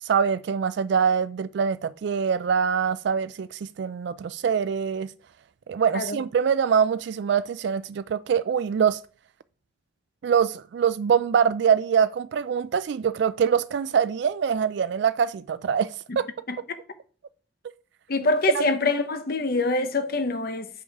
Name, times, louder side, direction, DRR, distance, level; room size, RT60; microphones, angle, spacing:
voice 1, 0.0-5.1 5.7-9.0 10.2-16.3, right 7 dB, 60° right, 0.3 m, -24 dB
voice 2, 16.5-16.8 18.1-20.7, left 3 dB, 50° left, 0.9 m, -25 dB
6.7 x 5.5 x 4.7 m
head